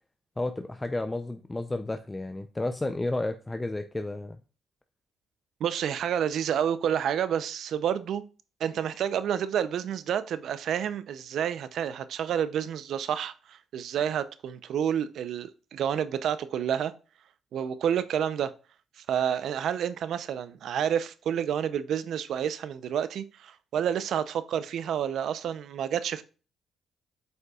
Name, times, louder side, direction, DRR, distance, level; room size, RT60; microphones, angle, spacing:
voice 1, 0.4-4.4, left 2 dB, 15° left, 0.5 m, -32 dB
voice 2, 5.6-8.2 8.6-16.9 17.5-18.5 19.0-26.2, right 9 dB, 70° right, 0.6 m, -29 dB
7.9 x 5.3 x 2.4 m
cardioid pair, 90°, 0 cm